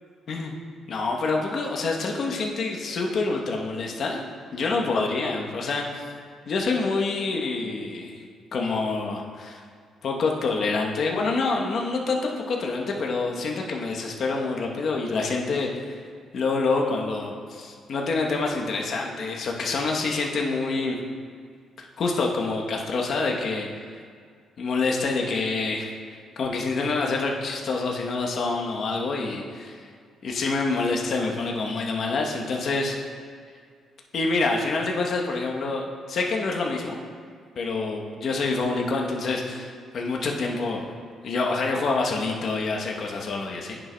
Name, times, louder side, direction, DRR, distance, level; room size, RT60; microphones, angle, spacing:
voice 1, 0.9-4.2 4.5-6.0 6.5-8.2 8.5-9.6 10.0-15.9 16.3-21.0 21.8-24.0 24.6-25.9 26.4-29.8 30.2-33.0 34.1-35.8 36.1-37.0 37.6-40.8 41.2-43.8, left 3 dB, 60° left, 0 dB, 0.9 m, -27 dB
10.5 x 6.2 x 2.2 m, 2.1 s
cardioid pair, 90°, 0 cm